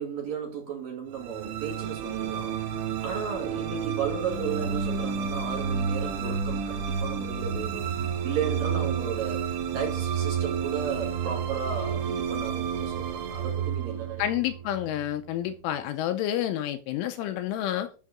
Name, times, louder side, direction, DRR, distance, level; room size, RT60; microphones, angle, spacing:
voice 1, 0.0-2.6 3.0-7.9 8.2-14.2, right 6 dB, 50° right, 3.1 m, -34 dB
sound 1, 1.1-15.5, right 7 dB, 70° right, 3.8 m, -30 dB
voice 2, 14.2-17.9, left 12 dB, 80° left, 3.0 m, -29 dB
13.5 x 6.4 x 3.6 m
omnidirectional pair, 5.9 m